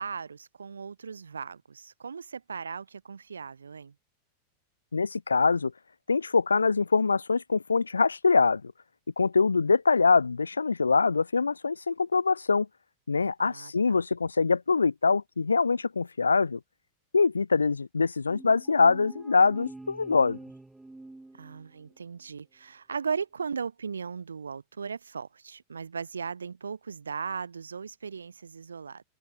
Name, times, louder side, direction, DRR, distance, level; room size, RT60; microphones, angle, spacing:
voice 1, 0.0-3.9 13.4-14.0 21.3-29.0, right 6 dB, 75° right, 6.3 m, -37 dB
voice 2, 4.9-5.7 6.1-8.6 9.2-12.7 13.1-16.6 17.1-20.4, left 4 dB, 75° left, 0.7 m, -24 dB
sound 1, 18.3-22.0, right 2 dB, 5° right, 4.2 m, -47 dB
open air
figure-of-eight pair, 90°, 0 cm